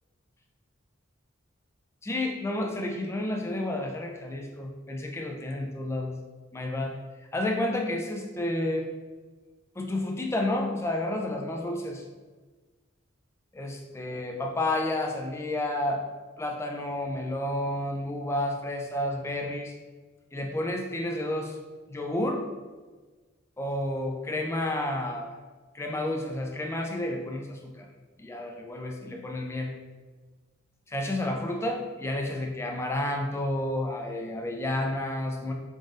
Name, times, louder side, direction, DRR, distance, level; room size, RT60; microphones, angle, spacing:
voice 1, 2.0-6.2 6.5-7.0 7.3-8.9 9.8-12.0 13.5-16.0 16.4-19.7 20.3-21.5 21.9-22.4 23.6-25.4 25.7-27.9 28.2-29.7 30.9-35.5, left 1 dB, 15° left, 2 dB, 0.3 m, -30 dB
3.8 x 2.5 x 3.6 m, 1.3 s
head